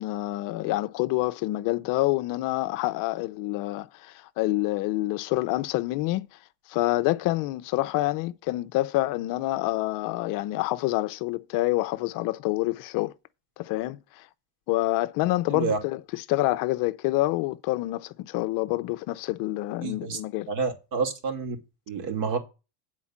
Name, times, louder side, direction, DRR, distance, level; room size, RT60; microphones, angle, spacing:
voice 1, 0.0-6.3 6.7-13.1 13.6-14.3 14.7-20.5, left 18 dB, 50° left, 0.6 m, -27 dB
voice 2, 19.8-20.2 20.5-21.6 21.9-22.4, right 5 dB, 55° right, 2.7 m, -28 dB
8.3 x 4.5 x 7.3 m
supercardioid pair, 125°, 44 cm